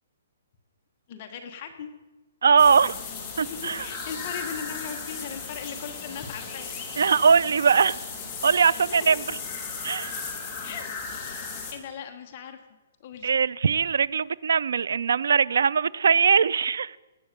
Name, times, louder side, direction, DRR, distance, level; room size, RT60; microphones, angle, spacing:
voice 1, 1.1-1.9 3.5-6.7 7.0-7.3 8.7-9.2 10.6-10.9 11.2-11.3 11.7-12.6 13.0-13.3, left 7 dB, 30° left, 5 dB, 1.2 m, -38 dB
voice 2, 2.4-3.0 3.4-3.9 7.0-8.0 8.4-9.2 9.8-10.1 13.2-17.0, right 6 dB, 70° right, 22 dB, 0.4 m, -21 dB
sound 1, 2.6-11.7, left 5 dB, 10° left, 1.9 m, -36 dB
18.5 x 8.7 x 6.7 m, 1.1 s
hypercardioid pair, 175°, 0 cm